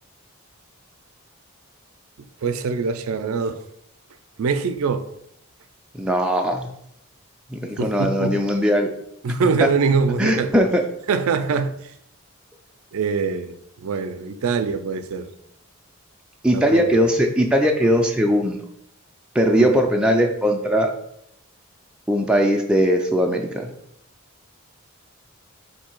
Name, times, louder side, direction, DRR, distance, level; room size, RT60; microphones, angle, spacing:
voice 1, 2.4-3.6 4.4-5.1 7.8-8.4 9.2-10.5 11.1-11.8 12.9-13.6 13.8-15.3 16.5-16.9 19.5-19.8, right 5 dB, 75° right, 0.4 m, -23 dB
voice 2, 6.0-6.7 7.5-8.9 9.3-9.7 10.2-10.8 16.4-18.6 19.3-20.9 22.1-23.7, equal, 5° right, 0.3 m, -19 dB
4.5 x 2.7 x 4.4 m
head